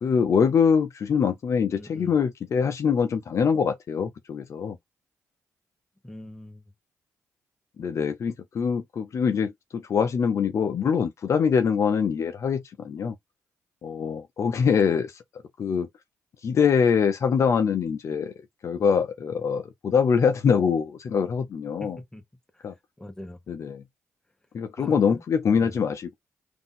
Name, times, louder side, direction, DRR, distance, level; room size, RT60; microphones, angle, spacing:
voice 1, 0.0-4.8 7.8-13.2 13.8-15.9 16.4-18.3 18.6-22.0 22.6-22.7 23.5-23.8 24.5-26.1, left 6 dB, 55° left, 0.6 m, -24 dB
voice 2, 1.7-2.1 6.0-6.6 21.8-22.2 22.5-22.6 23.0-23.4 24.8-25.2 25.5-25.7, left 1 dB, 10° left, 1.2 m, -42 dB
3.9 x 2.7 x 3.7 m
cardioid pair, 70°, 6 cm